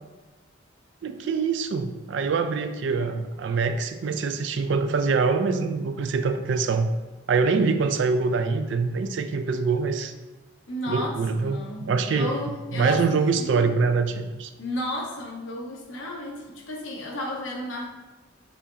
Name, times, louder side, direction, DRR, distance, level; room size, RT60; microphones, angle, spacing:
voice 1, 1.0-6.9 7.3-10.1 10.9-12.3 12.7-14.5, right 4 dB, 65° right, 8 dB, 0.3 m, -24 dB
voice 2, 10.7-11.1 11.4-13.7 14.6-17.9, left 1 dB, 75° left, -2 dB, 1.0 m, -33 dB
6.7 x 2.6 x 2.8 m, 1.2 s
head